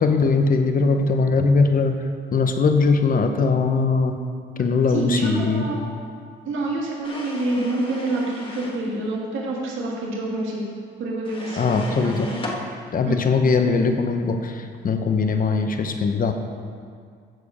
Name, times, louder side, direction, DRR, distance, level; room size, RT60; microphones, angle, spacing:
voice 1, 0.0-2.0 2.3-4.2 4.6-5.8 11.6-12.3 12.9-16.3, left 4 dB, 45° left, 6 dB, 0.9 m, -20 dB
voice 2, 4.9-5.8 6.4-10.7 11.0-12.4 13.0-13.2, right 2 dB, 75° right, -3 dB, 1.7 m, -27 dB
sound 1, 7.0-8.8 11.3-12.6, left 2 dB, 25° left, 1.5 m, -36 dB
14.0 x 5.0 x 4.9 m, 2.1 s
cardioid pair, 90°, 20 cm